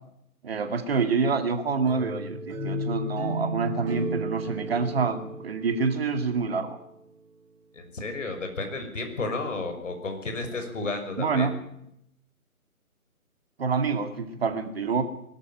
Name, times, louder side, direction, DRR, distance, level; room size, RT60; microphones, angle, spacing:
voice 1, 0.4-6.8 11.2-11.6 13.6-15.0, right 4 dB, 40° right, 8 dB, 2.2 m, -27 dB
sound 1, 1.9-6.8, right 1 dB, 5° right, 0.9 m, -33 dB
voice 2, 7.7-11.5, left 3 dB, 55° left, 6 dB, 5.9 m, -32 dB
21.5 x 13.5 x 9.1 m, 0.77 s
figure-of-eight pair, 150°, 44 cm